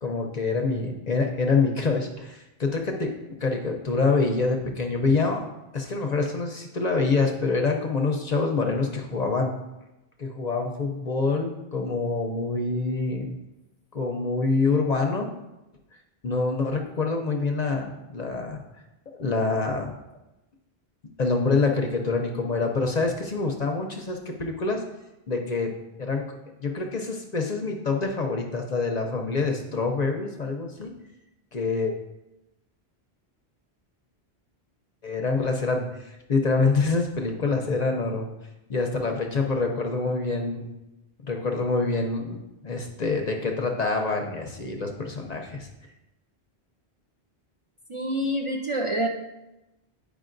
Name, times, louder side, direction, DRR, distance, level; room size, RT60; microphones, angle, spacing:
voice 1, 0.0-3.1 3.4-5.4 5.7-9.5 10.2-13.3 13.9-15.3 16.2-18.6 19.2-20.0 21.2-24.8 25.3-26.3 26.6-30.9 31.5-31.9 35.0-38.3 38.7-40.7 41.2-45.7, left 3 dB, 50° left, 3 dB, 0.6 m, -26 dB
voice 2, 47.9-49.1, right 1 dB, 40° right, 0 dB, 0.5 m, -27 dB
9.2 x 4.9 x 2.5 m, 0.97 s
omnidirectional pair, 1.1 m